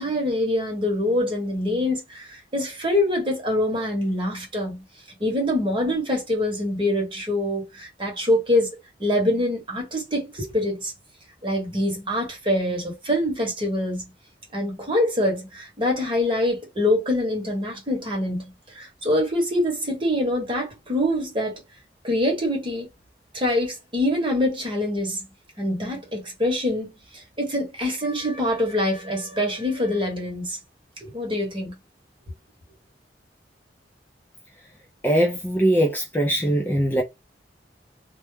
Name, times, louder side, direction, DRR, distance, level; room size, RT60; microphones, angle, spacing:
voice 1, 0.0-4.8 5.2-8.7 9.0-10.9 11.4-14.1 14.5-21.6 22.0-22.9 23.3-25.2 25.6-30.6 31.0-31.7, left 1 dB, 30° right, 1.1 m, -25 dB
voice 2, 35.0-37.0, right 1 dB, 10° left, 0.4 m, -21 dB
2.2 x 2.1 x 3.1 m
head